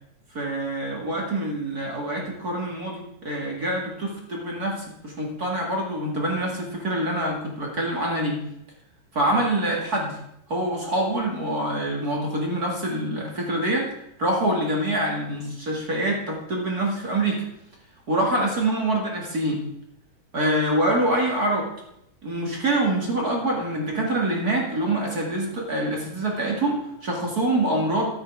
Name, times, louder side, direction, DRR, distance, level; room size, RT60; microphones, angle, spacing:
voice 1, 0.3-8.4 9.1-10.2 10.5-13.9 14.2-17.4 18.1-19.7 20.3-21.7 22.2-28.1, right 1 dB, 30° right, -1 dB, 2.2 m, -25 dB
13.5 x 8.8 x 4.8 m, 0.78 s
omnidirectional pair, 3.9 m